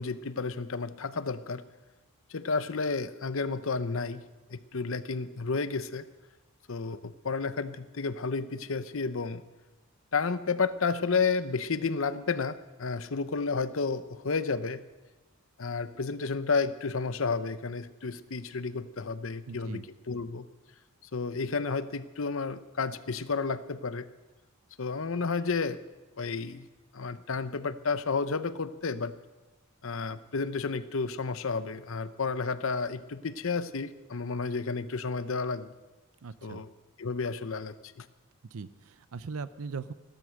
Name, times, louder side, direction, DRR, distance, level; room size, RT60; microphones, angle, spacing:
voice 1, 0.0-1.6 2.3-4.2 4.5-6.1 6.7-9.4 10.1-14.8 15.6-20.5 21.1-24.1 24.8-25.8 26.2-26.7 26.9-29.2 29.8-35.7 36.4-36.7 37.0-38.1, left 4 dB, 65° left, 13 dB, 0.8 m, -31 dB
voice 2, 19.5-19.8 36.2-36.6 38.5-39.9, right 4 dB, 75° right, 14 dB, 0.6 m, -39 dB
16.5 x 12.5 x 6.5 m, 1.2 s
head